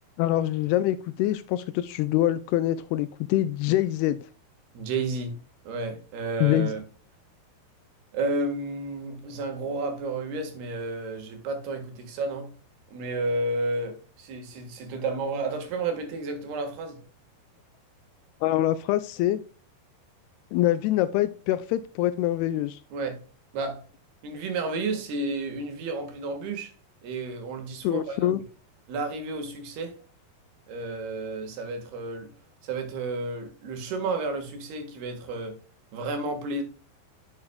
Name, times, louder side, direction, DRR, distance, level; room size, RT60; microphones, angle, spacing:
voice 1, 0.2-4.2 6.4-6.7 18.4-19.4 20.5-22.8 27.8-28.4, left 14 dB, 85° left, 2.4 m, -25 dB
voice 2, 4.8-5.4 5.7-6.8 8.1-12.5 12.9-17.0 22.9-23.2 23.5-23.8 24.2-26.7 27.0-28.4 28.9-30.0 30.7-32.3 32.6-35.6 35.9-36.6, right 3 dB, 70° right, 3.5 m, -31 dB
9.7 x 7.0 x 2.3 m
omnidirectional pair, 4.8 m